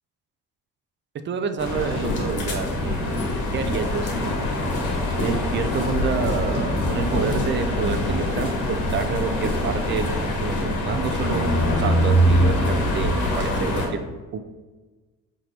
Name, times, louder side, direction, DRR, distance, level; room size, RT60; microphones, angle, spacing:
voice 1, 1.2-3.2 3.5-4.5 5.2-14.0 14.3-14.4, right 6 dB, 35° right, 9 dB, 0.4 m, -28 dB
sound 1, 1.6-13.9, left 1 dB, 70° left, 1.2 m, -23 dB
4.3 x 2.6 x 3.1 m, 1.2 s
cardioid pair, 85°, 32 cm